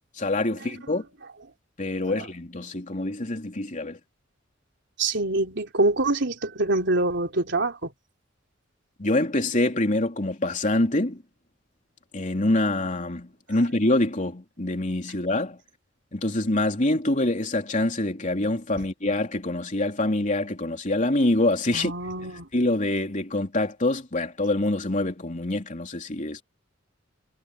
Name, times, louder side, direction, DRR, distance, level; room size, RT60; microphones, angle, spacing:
voice 1, 0.2-1.0 1.8-4.0 9.0-11.2 12.1-15.6 16.1-21.9 22.5-26.4, left 2 dB, 40° left, 3.3 m, -25 dB
voice 2, 5.0-7.9 21.7-22.5, right 2 dB, 60° right, 3.6 m, -25 dB
head